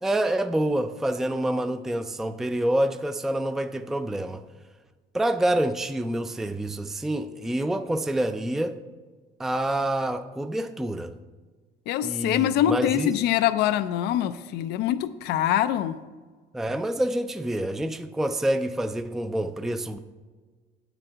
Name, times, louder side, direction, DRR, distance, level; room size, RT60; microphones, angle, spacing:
voice 1, 0.0-4.4 5.1-8.8 9.4-11.1 12.0-13.2 16.5-20.0, right 1 dB, ahead, 10 dB, 0.4 m, -27 dB
voice 2, 11.9-16.0, left 11 dB, 80° left, 12 dB, 0.4 m, -24 dB
9.1 x 7.9 x 4.5 m, 1.4 s
cardioid pair, 110°, 17 cm